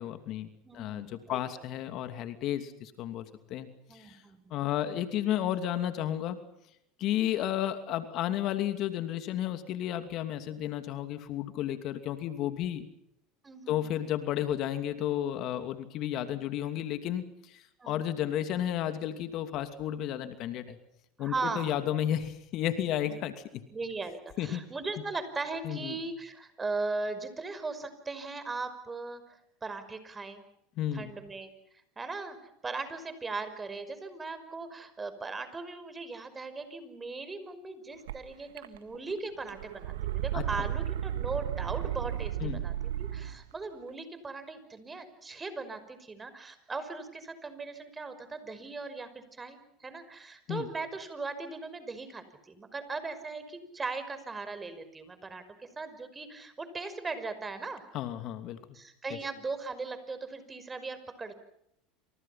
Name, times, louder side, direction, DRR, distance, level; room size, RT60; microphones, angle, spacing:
voice 1, 0.0-0.5 0.7-3.2 3.5-4.2 4.5-6.4 7.0-12.9 13.7-20.8 21.2-23.6 24.4-24.6 25.6-26.0 30.8-31.1 40.3-40.4 42.4-42.6 50.5-50.7 57.9-58.6, left 11 dB, 55° left, 9 dB, 2.8 m, -32 dB
voice 2, 0.6-1.4 3.9-4.6 13.4-13.9 17.8-18.0 21.2-21.8 23.1-23.2 23.7-29.2 29.6-30.4 30.9-31.5 32.0-42.7 43.0-57.8 58.7-61.3, right 3 dB, 20° right, 11 dB, 5.6 m, -38 dB
sound 1, 38.1-38.2 38.6-39.1 39.4-43.4, right 11 dB, 85° right, 1.7 m, -34 dB
28.5 x 27.0 x 5.9 m, 0.75 s
hypercardioid pair, 95°, 0 cm